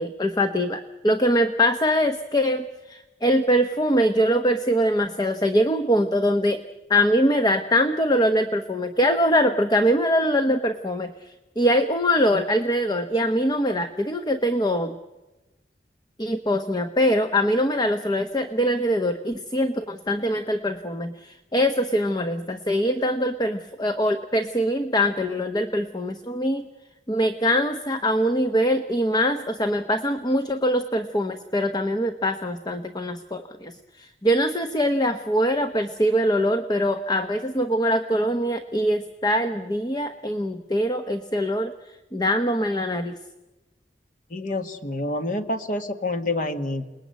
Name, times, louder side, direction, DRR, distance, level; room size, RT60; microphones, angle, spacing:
voice 1, 0.0-6.6 6.9-15.0 16.2-26.7 27.1-41.7 42.1-43.1, equal, 25° left, 8 dB, 0.9 m, -23 dB
voice 2, 44.3-46.9, left 2 dB, 50° left, 7 dB, 1.7 m, -28 dB
29.0 x 20.0 x 9.3 m, 1.1 s
head